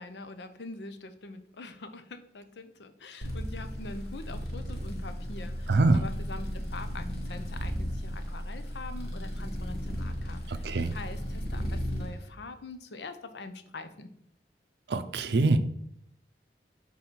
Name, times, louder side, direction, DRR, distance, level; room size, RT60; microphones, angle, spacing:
voice 1, 0.0-10.7 10.9-14.1, left 3 dB, 80° left, 9 dB, 0.6 m, -44 dB
sound 1, 3.2-12.1, equal, 65° left, 1.3 m, -35 dB
voice 2, 5.7-6.0 10.5-10.9 14.9-15.6, right 3 dB, 75° right, 11 dB, 0.5 m, -24 dB
5.7 x 3.8 x 4.5 m, 0.71 s
head